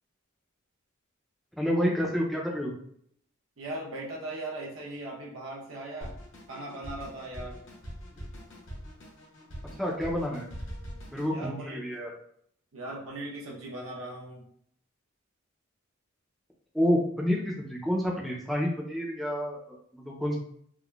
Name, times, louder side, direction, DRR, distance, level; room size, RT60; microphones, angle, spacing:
voice 1, 1.6-2.7 9.8-10.5 11.1-12.1 16.7-20.4, equal, ahead, -3 dB, 0.4 m, -29 dB
voice 2, 3.6-6.2 6.5-7.6 11.3-11.8 12.7-14.4, right 1 dB, 75° right, -2 dB, 0.8 m, -39 dB
Drum kit, 6.0-11.3, equal, 65° left, 0.9 m, -43 dB
3.6 x 2.1 x 2.3 m, 0.65 s
head